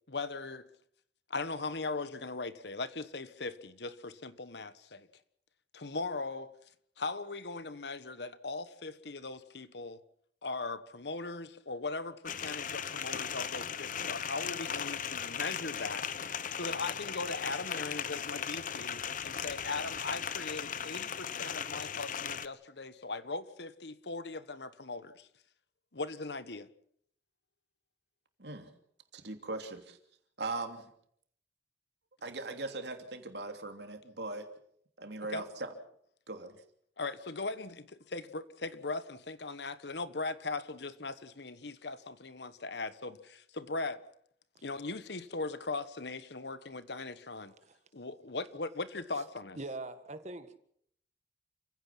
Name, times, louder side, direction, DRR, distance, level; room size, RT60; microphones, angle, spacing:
voice 1, 0.1-0.6 1.3-5.1 5.7-6.5 7.0-10.0 10.4-16.1 16.5-25.3 25.9-26.7 35.3-35.4 37.0-44.0 44.6-47.5 47.9-49.6, left 3 dB, 70° left, 1.3 m, -39 dB
sound 1, 12.3-22.5, left 8 dB, 50° left, 0.9 m, -37 dB
sound 2, 18.9-21.1, equal, 30° left, 6.3 m, -62 dB
voice 2, 28.4-28.7 29.1-30.0 30.4-30.9 32.2-34.5 35.0-35.7 36.3-36.6, right 2 dB, 70° right, 3.0 m, -40 dB
voice 3, 49.6-50.6, right 2 dB, 40° right, 1.8 m, -42 dB
29.0 x 16.5 x 5.9 m
head